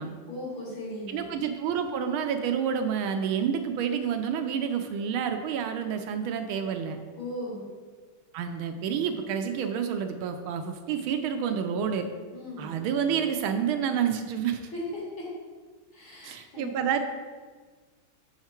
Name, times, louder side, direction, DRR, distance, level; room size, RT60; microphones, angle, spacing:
voice 1, 0.3-1.2 7.2-7.7 12.3-12.7 14.7-15.2 15.9-16.7, left 1 dB, 65° left, -6 dB, 3.2 m, -37 dB
voice 2, 1.1-7.0 8.3-12.1 12.6-14.6 16.2-17.0, right 7 dB, 80° right, 6 dB, 1.4 m, -29 dB
6.4 x 5.8 x 4.3 m, 1.5 s
omnidirectional pair, 2.4 m